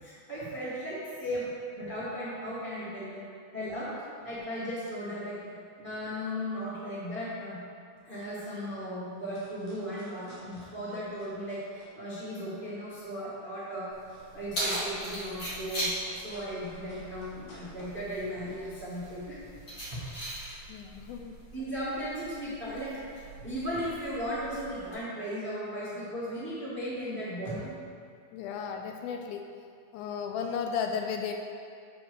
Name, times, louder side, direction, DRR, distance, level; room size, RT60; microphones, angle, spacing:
voice 1, 0.0-3.3 3.5-3.9 4.2-7.6 8.0-13.9 14.3-19.4 19.9-20.2 21.5-23.0 23.4-27.8, equal, 45° right, -10 dB, 0.6 m, -36 dB
sound 1, 7.4-7.5 8.0-8.1 8.3-8.7 9.0-12.0 12.3-18.8, left 1 dB, 60° left, 3.1 m, -55 dB
Keys jangling, 13.9-24.9, right 1 dB, 30° left, 2.1 m, -40 dB
voice 2, 20.7-21.3 28.3-29.4 29.9-31.3, left 6 dB, 80° left, 4 dB, 2.3 m, -34 dB
7.8 x 5.3 x 6.4 m, 2.3 s
omnidirectional pair, 4.4 m